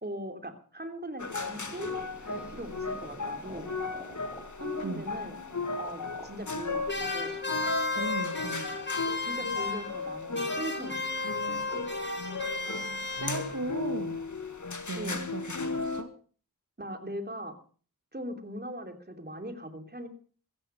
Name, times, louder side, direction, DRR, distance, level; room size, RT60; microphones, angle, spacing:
voice 1, 0.0-1.9 2.2-3.8 4.6-5.3 5.8-7.4 9.2-11.9 15.0-15.2 16.8-17.5 18.1-20.1, right 1 dB, 30° right, 6 dB, 3.2 m, -40 dB
sound 1, 1.2-16.0, left 3 dB, 55° left, 1.9 m, -36 dB
sound 2, 1.4-8.3, right 1 dB, 5° right, 5.8 m, -50 dB
sound 3, 6.9-10.1 10.3-13.7, left 3 dB, 30° left, 3.2 m, -34 dB
voice 2, 7.9-8.7 13.2-14.2 14.9-16.1, right 2 dB, 55° right, 5 dB, 2.2 m, -36 dB
15.5 x 14.0 x 5.9 m, 0.43 s
wide cardioid pair, 45°, 35 cm